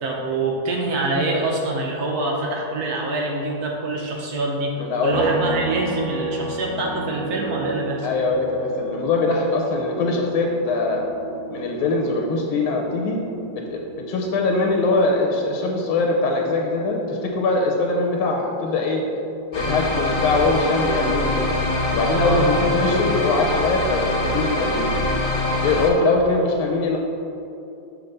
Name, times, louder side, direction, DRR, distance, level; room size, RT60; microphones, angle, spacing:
voice 1, 0.0-4.7 5.0-8.1 22.1-22.5, right 2 dB, 65° right, -1 dB, 1.0 m, -25 dB
voice 2, 4.8-5.4 8.0-11.1 11.5-13.2 13.5-19.0 19.5-21.4 21.9-24.9 25.6-27.0, left 3 dB, 90° left, 0 dB, 1.5 m, -22 dB
sound 1, 5.1-18.7 19.0-21.2, right 3 dB, 80° right, 1.5 m, -34 dB
sound 2, 19.5-25.9, left 1 dB, 55° left, 0.5 m, -24 dB
7.0 x 3.2 x 5.3 m, 2.8 s
omnidirectional pair, 2.2 m